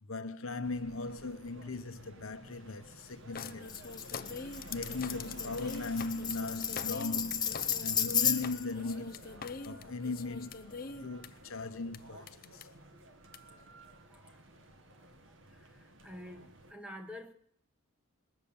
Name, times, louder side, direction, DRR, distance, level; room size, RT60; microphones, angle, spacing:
voice 1, 0.0-4.0 4.7-9.3 9.6-12.7, left 3 dB, 65° left, 0.9 m, -39 dB
sound 1, 0.6-16.7, right 1 dB, 55° right, 1.4 m, -53 dB
sound 2, 3.4-11.3 11.9-12.0 12.3-12.6 13.3-13.4, left 5 dB, 40° left, 0.6 m, -43 dB
Tambourine, 3.7-8.7, left 8 dB, 20° left, 1.0 m, -33 dB
voice 2, 14.1-14.4 14.9-15.1 15.5-17.3, left 1 dB, 5° right, 1.0 m, -49 dB
20.0 x 7.1 x 8.6 m
head